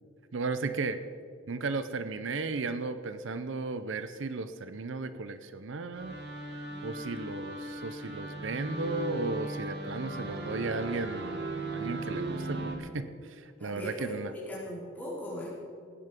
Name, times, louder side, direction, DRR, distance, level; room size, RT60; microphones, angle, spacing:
voice 1, 0.3-1.0 1.5-6.2 6.8-14.3, right 3 dB, 75° right, 11 dB, 0.6 m, -35 dB
sound 1, 5.9-12.8, right 2 dB, 55° right, 2.0 m, -37 dB
voice 2, 6.7-7.1 13.6-15.5, left 1 dB, 10° left, -7 dB, 4.5 m, -40 dB
18.0 x 9.5 x 5.2 m, 2.2 s
head